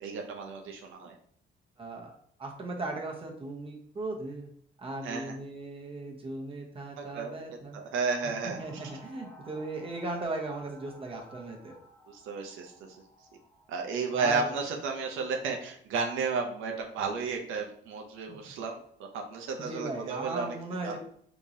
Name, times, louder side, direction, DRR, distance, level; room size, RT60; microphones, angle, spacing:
voice 1, 0.0-1.1 5.0-5.3 7.0-7.3 7.7-8.6 12.1-12.7 13.7-20.5 20.8-21.0, right 4 dB, 90° right, 3 dB, 0.6 m, -33 dB
voice 2, 1.8-4.5 4.8-7.8 8.4-11.7 14.1-14.5 18.3-18.4 19.6-21.0, right 2 dB, 30° right, 0 dB, 0.9 m, -37 dB
sound 1, 8.2-14.3, equal, 5° left, 1.0 m, -55 dB
3.7 x 3.0 x 2.6 m, 0.63 s
cardioid pair, 90°, 20 cm